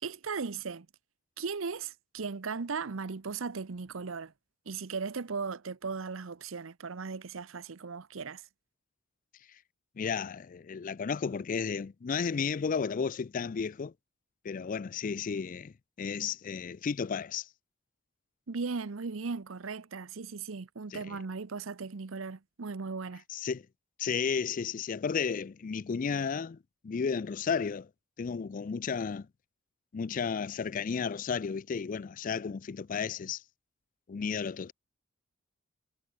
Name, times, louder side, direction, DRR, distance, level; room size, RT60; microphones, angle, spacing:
voice 1, 0.0-0.9 1.4-4.3 4.7-8.4 18.5-23.2, right 4 dB, 80° right, 0.8 m, -37 dB
voice 2, 10.0-13.9 14.4-17.5 20.9-21.2 23.3-23.7 24.0-26.6 26.8-27.9 28.2-29.3 29.9-33.4 34.1-34.7, left 6 dB, 40° left, 0.4 m, -33 dB
head